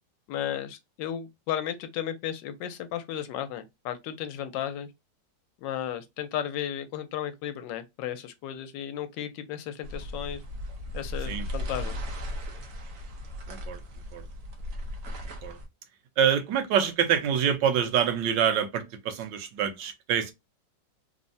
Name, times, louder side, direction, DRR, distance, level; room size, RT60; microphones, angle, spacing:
voice 1, 0.3-4.9 5.6-10.4 10.9-11.9, left 10 dB, 80° left, 1.2 m, -34 dB
sound 1, 9.8-15.7, equal, 60° right, 0.9 m, -36 dB
voice 2, 13.5-13.8 14.1-14.2 15.4-15.6 16.2-20.3, right 8 dB, 80° right, 1.3 m, -26 dB
3.4 x 2.0 x 2.6 m
omnidirectional pair, 2.0 m